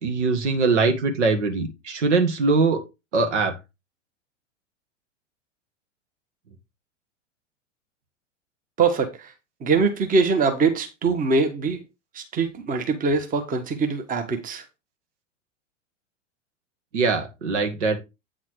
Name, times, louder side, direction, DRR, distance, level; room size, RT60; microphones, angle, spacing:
voice 1, 0.0-2.8 3.1-3.5 16.9-18.0, right 4 dB, 65° right, 1.8 m, -22 dB
voice 2, 8.8-9.3 9.6-11.8 12.1-14.6, right 4 dB, 20° right, 1.4 m, -23 dB
8.8 x 4.1 x 4.7 m
figure-of-eight pair, 95°, 37 cm